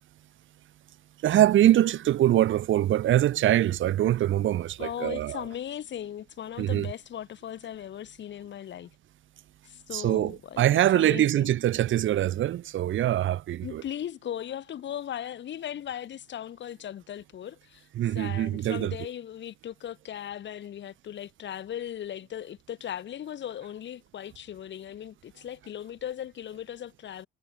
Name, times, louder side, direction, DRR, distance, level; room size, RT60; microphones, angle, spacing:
voice 1, 1.2-5.5 6.6-6.9 9.9-13.9 17.9-19.1, right 12 dB, 75° right, 3.2 m, -24 dB
voice 2, 4.8-8.9 9.7-11.5 13.6-17.9 18.1-27.3, left 10 dB, 65° left, 3.8 m, -38 dB
cardioid pair, 90°, 20 cm